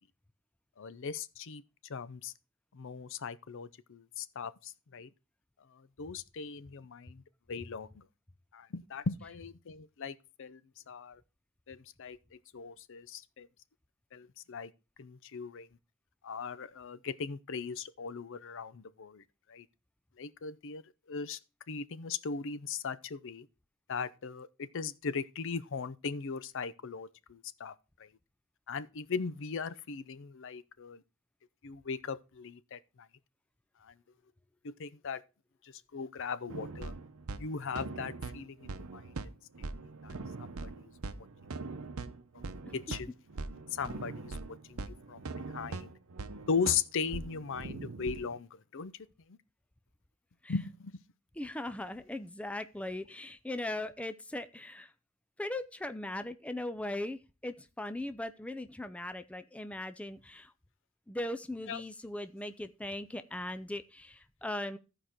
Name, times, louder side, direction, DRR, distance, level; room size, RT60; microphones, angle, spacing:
voice 1, 0.8-1.6 1.9-2.3 2.7-5.1 5.7-7.2 7.5-8.0 8.5-10.6 10.9-11.2 11.7-13.5 14.1-14.7 15.0-15.7 16.2-19.2 19.5-19.7 20.2-20.8 21.1-21.4 21.7-23.5 23.9-27.7 28.0-28.1 28.7-31.0 31.6-33.1 33.8-33.9 34.6-35.2 35.6-36.9 37.4-39.1 40.0-40.1 40.8-40.9 42.7-43.1 43.7-44.4 44.7-44.8 45.1-45.2 45.5-45.9 46.5-48.9 49.3-49.4 50.5-51.0 61.7-61.8, left 5 dB, 60° left, 0.6 m, -38 dB
sound 1, 36.5-48.4, right 3 dB, 75° right, 0.7 m, -42 dB
voice 2, 51.4-54.9 55.4-60.5 61.1-64.8, left 1 dB, 5° left, 0.4 m, -39 dB
14.5 x 4.9 x 4.4 m
head